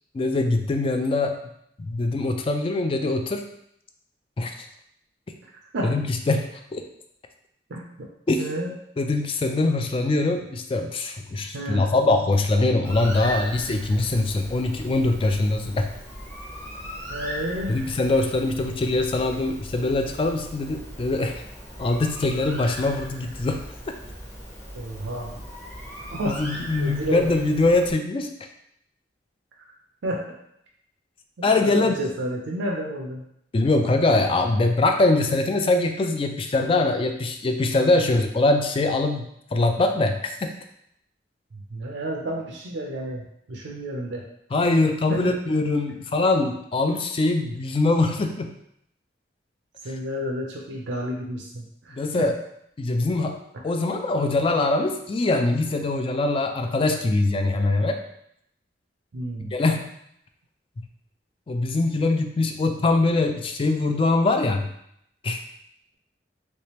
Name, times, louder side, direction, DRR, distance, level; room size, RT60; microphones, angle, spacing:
voice 1, 0.1-1.4 1.8-3.4 4.4-4.7 5.8-6.5 6.7-6.8 8.3-8.4 9.0-15.9 17.7-21.4 21.8-23.6 26.3-28.3 31.4-32.0 33.5-40.5 44.5-48.5 49.9-50.0 51.9-52.4 52.8-58.0 59.5-59.9 61.5-64.7 65.2-65.4, left 2 dB, 30° left, 5 dB, 0.3 m, -23 dB
voice 2, 7.7-8.1 8.4-8.7 11.5-11.9 17.1-17.8 24.7-25.3 26.1-26.4 26.8-27.5 30.0-30.2 31.4-33.2 41.7-44.2 45.1-45.4 49.8-52.3 59.1-59.5, right 1 dB, 85° right, -1 dB, 0.5 m, -31 dB
Bird, 12.8-27.9, equal, 15° left, 0.8 m, -39 dB
3.3 x 3.2 x 2.9 m, 0.74 s
head